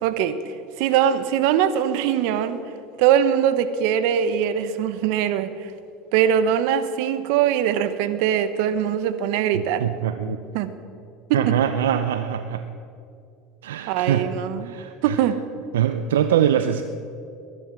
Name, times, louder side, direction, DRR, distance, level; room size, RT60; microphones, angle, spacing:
voice 1, 0.0-2.6 3.0-5.7 6.1-9.9 10.5-10.7 11.3-11.5 13.9-14.7 15.0-15.4, right 9 dB, 70° right, 12 dB, 1.1 m, -22 dB
voice 2, 9.5-10.4 11.3-12.7 13.6-14.3 14.6-15.2 15.7-16.8, right 10 dB, 90° right, 9 dB, 0.6 m, -23 dB
21.0 x 11.0 x 6.2 m, 2.6 s
hypercardioid pair, 90°, 0 cm